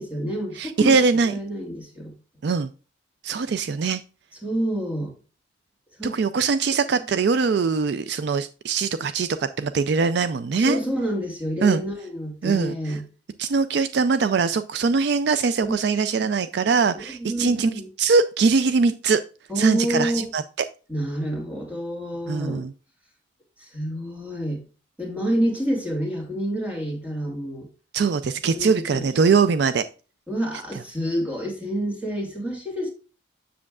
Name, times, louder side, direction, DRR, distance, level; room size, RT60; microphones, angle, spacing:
voice 1, 0.0-2.1 4.4-5.2 6.0-6.2 6.9-7.0 10.6-13.0 15.6-15.8 16.9-17.9 19.5-20.3 20.9-22.6 23.6-24.6 25.0-27.7 28.4-29.1 30.3-32.9, equal, 5° right, 2.2 m, -28 dB
voice 2, 0.6-1.3 2.4-2.7 3.2-4.0 6.0-10.8 11.6-11.8 12.4-13.0 13.4-17.7 18.0-19.2 19.6-20.4 22.3-22.7 27.9-29.8, right 5 dB, 55° right, 0.3 m, -22 dB
7.5 x 6.8 x 2.4 m
head